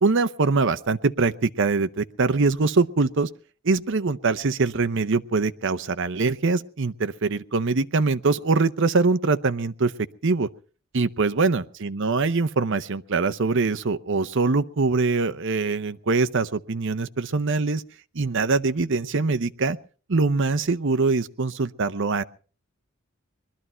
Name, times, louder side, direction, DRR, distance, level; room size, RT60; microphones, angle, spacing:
voice 1, 0.0-3.3 3.6-9.9 10.2-10.5 10.9-17.8 18.1-19.8 20.1-22.2, right 3 dB, 60° right, 12 dB, 0.7 m, -23 dB
22.0 x 12.5 x 4.4 m, 0.40 s
head